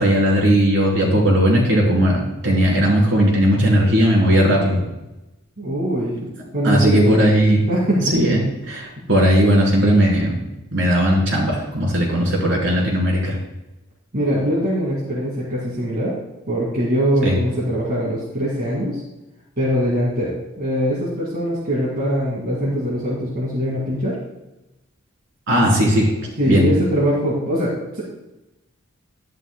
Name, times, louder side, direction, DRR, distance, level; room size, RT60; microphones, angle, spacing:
voice 1, 0.0-4.8 6.6-7.6 8.1-10.4 10.7-13.4 17.2-17.3 25.5-26.1 26.5-26.7, equal, 60° right, -3 dB, 3.3 m, -17 dB
voice 2, 5.6-6.2 6.5-7.1 7.7-8.0 14.1-16.2 16.5-19.0 19.6-24.2 26.4-28.0, equal, 45° right, -7 dB, 2.2 m, -22 dB
11.0 x 11.0 x 2.2 m, 0.96 s
head